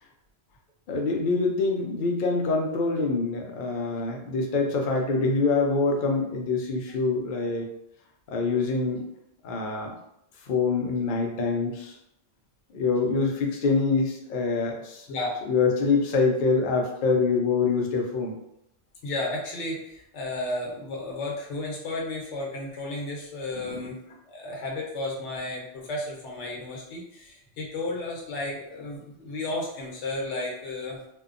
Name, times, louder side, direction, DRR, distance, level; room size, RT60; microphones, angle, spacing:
voice 1, 0.9-7.7 8.3-9.0 9.4-9.9 10.4-12.0 12.7-15.1 15.5-18.4 23.5-23.9, left 4 dB, 60° left, 1 dB, 0.6 m, -25 dB
voice 2, 15.1-15.4 19.0-31.1, left 2 dB, 75° left, -1 dB, 1.0 m, -33 dB
2.7 x 2.1 x 2.4 m, 0.79 s
omnidirectional pair, 1.2 m